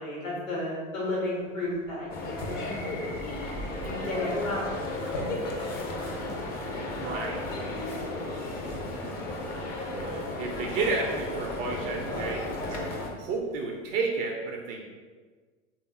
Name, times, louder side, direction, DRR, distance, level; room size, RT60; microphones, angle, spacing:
voice 1, 0.0-2.7 3.8-6.2 6.6-7.4, left 1 dB, 80° left, -6 dB, 1.2 m, -35 dB
sound 1, 1.1-6.5 7.4-8.7 9.9-10.1 10.4-11.5 11.8-14.0, left 2 dB, 55° left, 0.7 m, -45 dB
sound 2, 2.1-13.1, left 2 dB, 25° left, 0.4 m, -34 dB
voice 2, 7.0-7.4 9.9-14.9, right 3 dB, 45° right, 0 dB, 0.4 m, -32 dB
3.3 x 2.4 x 2.7 m, 1.5 s
figure-of-eight pair, 80°, 40 cm